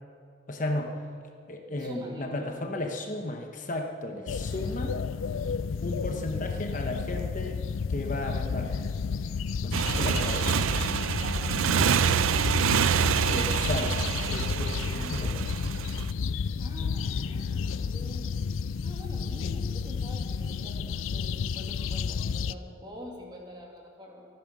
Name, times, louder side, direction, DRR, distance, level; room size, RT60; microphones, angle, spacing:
voice 1, 0.5-1.0 1.5-5.0 5.8-7.6 7.9-8.7 9.6-10.5 13.3-13.9 14.3-15.4, left 1 dB, 40° left, 3 dB, 1.1 m, -34 dB
voice 2, 1.7-2.4 4.1-4.4 9.8-10.6 11.2-12.5 14.8-15.5 16.6-18.5 18.8-24.3, left 1 dB, 20° right, -1 dB, 2.4 m, -46 dB
sound 1, 4.3-22.5, left 5 dB, 75° left, 0.4 m, -31 dB
Motorcycle, 9.7-16.1, right 7 dB, 80° right, 0.5 m, -26 dB
24.0 x 9.0 x 6.2 m, 2.3 s
head